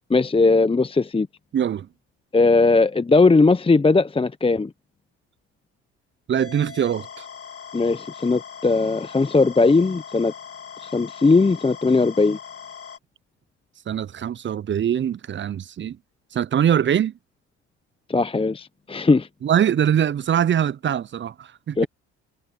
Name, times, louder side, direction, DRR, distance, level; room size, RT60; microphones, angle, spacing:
voice 1, 0.1-1.3 2.3-4.7 7.7-10.3 10.8-12.4 18.1-19.3 21.8-21.9, left 3 dB, 15° left, 0.9 m, -18 dB
voice 2, 1.5-1.9 6.3-7.3 13.9-16.0 16.3-17.1 19.4-21.9, right 9 dB, 35° right, 0.6 m, -22 dB
sound 1, 6.4-13.0, left 6 dB, 40° left, 1.9 m, -40 dB
hypercardioid pair, 60°, 35 cm